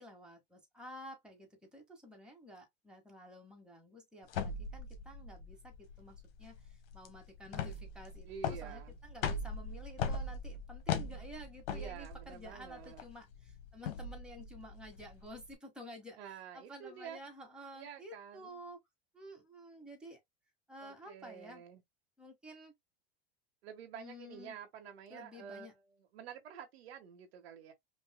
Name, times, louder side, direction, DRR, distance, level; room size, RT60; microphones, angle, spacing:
voice 1, 0.0-18.8 19.1-20.2 20.7-21.6 22.2-22.7 23.9-24.6 25.1-25.7, equal, 5° right, 1.6 m, -52 dB
sound 1, 4.3-15.5, left 5 dB, 70° left, 1.1 m, -40 dB
voice 2, 8.3-9.0 11.7-13.0 16.2-17.2 17.7-18.6 20.8-21.8 23.6-27.7, right 7 dB, 85° right, 1.4 m, -49 dB
5.4 x 2.6 x 2.2 m
supercardioid pair, 120°, 30 cm